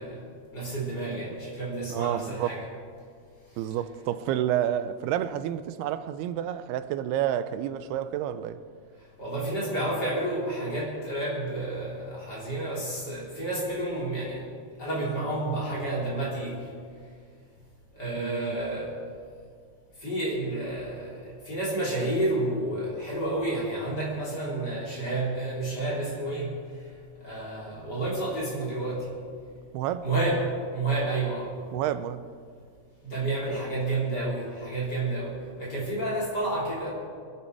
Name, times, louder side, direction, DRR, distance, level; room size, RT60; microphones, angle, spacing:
voice 1, 0.0-2.6 9.2-14.5 14.8-16.7 17.9-18.9 20.0-26.9 27.2-29.2 30.0-31.5 33.0-36.9, right 2 dB, 25° left, 3.7 m, -30 dB
voice 2, 1.9-2.5 3.6-8.6 18.2-18.8 29.7-30.0 31.7-32.2 33.5-33.6 34.2-34.3, right 11 dB, 90° right, 2.6 m, -30 dB
21.5 x 12.0 x 4.7 m
omnidirectional pair, 4.5 m